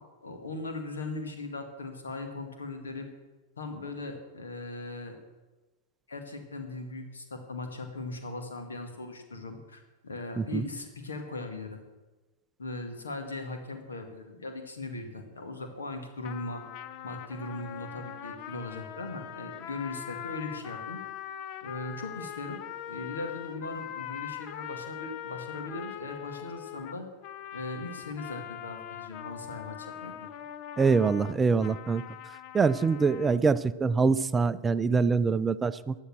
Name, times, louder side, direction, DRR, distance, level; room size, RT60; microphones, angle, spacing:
voice 1, 0.0-3.1 3.6-5.2 6.1-11.8 12.6-16.6 17.0-21.0 21.6-27.1 27.5-30.3, left 2 dB, 70° left, 6 dB, 2.1 m, -39 dB
sound 1, 16.2-33.4, left 11 dB, 40° left, 0.7 m, -42 dB
voice 2, 30.8-32.0 32.5-36.0, right 4 dB, 15° right, 15 dB, 0.5 m, -24 dB
15.5 x 10.5 x 6.3 m, 1.2 s
figure-of-eight pair, 90°, 0 cm